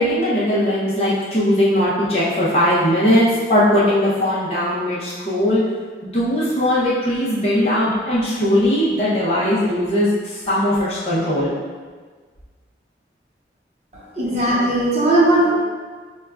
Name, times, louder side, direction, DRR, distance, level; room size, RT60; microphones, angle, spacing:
voice 1, 0.0-5.6 6.0-11.5, left 1 dB, 35° left, -9 dB, 0.7 m, -19 dB
voice 2, 13.9-15.5, right 1 dB, 40° right, -6 dB, 0.7 m, -18 dB
5.2 x 2.2 x 2.3 m, 1.5 s
head